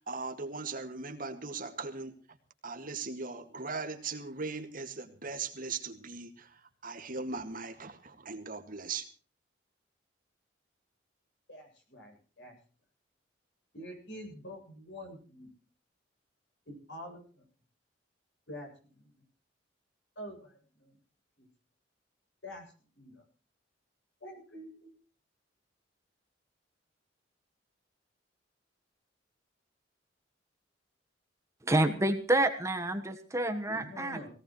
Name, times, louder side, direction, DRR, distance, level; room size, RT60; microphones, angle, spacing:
voice 1, 0.0-2.2 2.6-9.1, right 4 dB, 50° right, 6 dB, 2.0 m, -39 dB
voice 2, 11.5-12.6 13.7-15.5 16.7-17.4 18.5-19.1 20.2-21.0 21.4-21.5 22.4-22.6 23.0-23.2 24.2-24.9 33.7-34.3, equal, 70° left, 2 dB, 7.6 m, -46 dB
voice 3, 31.6-34.2, right 1 dB, 15° right, 7 dB, 1.3 m, -28 dB
18.5 x 18.0 x 3.1 m, 0.42 s
head